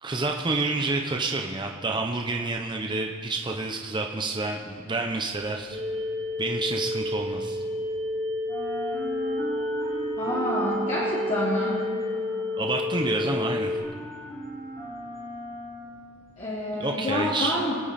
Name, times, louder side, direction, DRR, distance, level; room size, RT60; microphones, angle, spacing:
voice 1, 0.0-5.8 6.4-7.6 12.6-13.8 16.8-17.6, right 3 dB, 25° right, 2 dB, 0.7 m, -29 dB
sound 1, 5.6-8.1 8.4-16.5, right 2 dB, 15° left, 3.2 m, -39 dB
sound 2, 5.7-13.8, left 2 dB, 55° right, 3.1 m, -30 dB
voice 2, 10.2-11.8 16.4-17.7, left 1 dB, 35° left, -9 dB, 2.6 m, -28 dB
26.5 x 9.0 x 4.2 m, 2.4 s
head